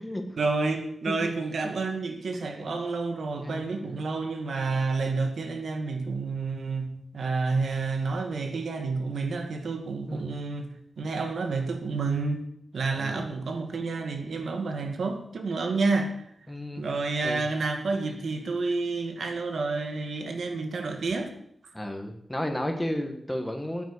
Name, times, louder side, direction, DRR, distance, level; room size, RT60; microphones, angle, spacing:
voice 1, 0.4-12.4 12.7-16.1 16.8-21.3, right 3 dB, 85° right, 2.0 m, -29 dB
voice 2, 2.3-2.8 3.4-3.6 10.1-10.2 13.0-13.3 16.5-16.9 17.2-17.4 21.7-23.8, left 1 dB, 10° left, 1.5 m, -33 dB
9.5 x 9.3 x 9.9 m
wide cardioid pair, 140°, 0 cm